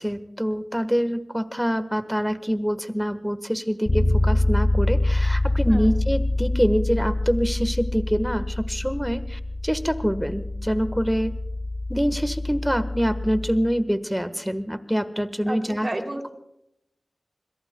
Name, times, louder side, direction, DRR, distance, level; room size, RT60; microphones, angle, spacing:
voice 1, 0.0-11.3 11.9-15.9, equal, 5° right, 11 dB, 1.3 m, -25 dB
Bass guitar, 3.9-13.7, left 2 dB, 50° left, 5.1 m, -25 dB
voice 2, 15.5-16.3, right 1 dB, 35° right, 4 dB, 2.9 m, -32 dB
27.0 x 21.5 x 2.3 m, 0.82 s
cardioid pair, 40°, 0 cm